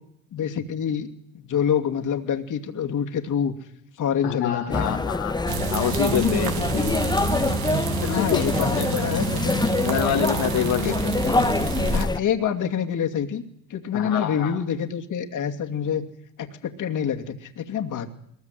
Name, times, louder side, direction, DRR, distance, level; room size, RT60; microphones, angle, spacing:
voice 1, 0.3-1.1 1.3-3.5 4.0-5.0 8.1-9.6 10.8-10.9 11.9-13.4 13.7-16.0 16.4-18.1, left 8 dB, 50° left, 4 dB, 2.5 m, -26 dB
voice 2, 4.2-5.4 5.7-7.0 8.0-9.2 9.8-10.9 11.2-11.5 13.9-14.6, left 10 dB, 70° left, 0 dB, 2.0 m, -27 dB
sound 1, 4.7-12.2, left 3 dB, 10° left, 0.9 m, -25 dB
sound 2, 5.5-12.1, right 8 dB, 65° right, 2.3 m, -29 dB
22.0 x 20.5 x 8.3 m, 0.74 s
supercardioid pair, 75°, 38 cm